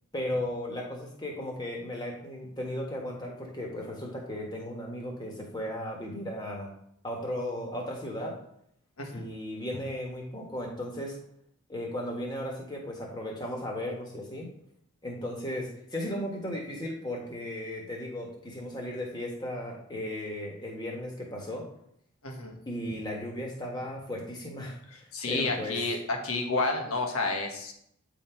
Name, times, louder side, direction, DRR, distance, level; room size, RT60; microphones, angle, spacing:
voice 1, 0.1-6.7 7.0-8.4 9.1-11.2 11.7-14.5 15.0-21.7 22.6-25.9, left 1 dB, 20° left, -1 dB, 1.2 m, -36 dB
voice 2, 22.2-22.6 25.1-27.7, left 3 dB, 75° left, 3 dB, 1.3 m, -30 dB
8.7 x 3.8 x 4.4 m, 0.71 s
head